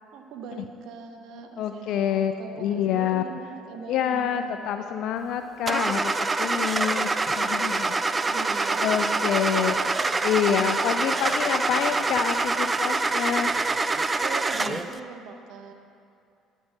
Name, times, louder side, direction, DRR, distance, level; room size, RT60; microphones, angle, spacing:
voice 1, 0.1-4.6 8.3-10.2 11.0-12.3 13.9-15.7, right 5 dB, 65° right, 5 dB, 0.9 m, -42 dB
sound 1, 1.3-14.7, left 11 dB, 80° left, 1.0 m, -51 dB
voice 2, 1.6-3.2 3.9-8.0 8.8-9.9 10.2-13.6 14.6-14.8, left 9 dB, 65° left, 8 dB, 0.4 m, -27 dB
Car / Engine starting, 5.7-14.9, right 3 dB, 25° right, 0.4 m, -25 dB
12.0 x 5.4 x 6.6 m, 2.6 s
hypercardioid pair, 60°, 0 cm